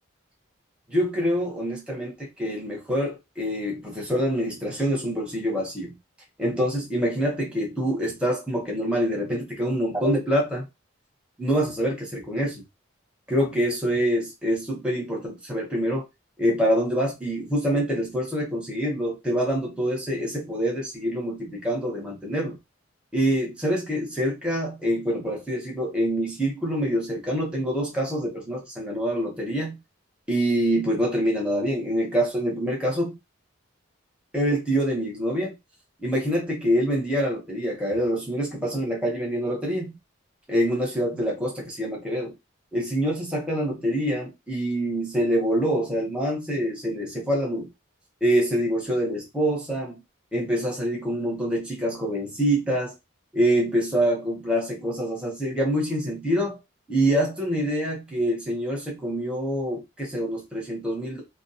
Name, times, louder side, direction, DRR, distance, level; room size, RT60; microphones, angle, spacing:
voice 1, 0.9-5.9 6.4-10.7 11.4-12.6 13.3-16.1 16.4-22.6 23.1-29.7 30.3-33.2 34.3-35.5 36.0-40.0 40.5-42.3 42.7-47.7 48.2-49.9 50.3-52.9 53.3-56.6 56.9-61.2, equal, 5° right, 0.8 m, -25 dB
2.2 x 2.2 x 2.7 m
head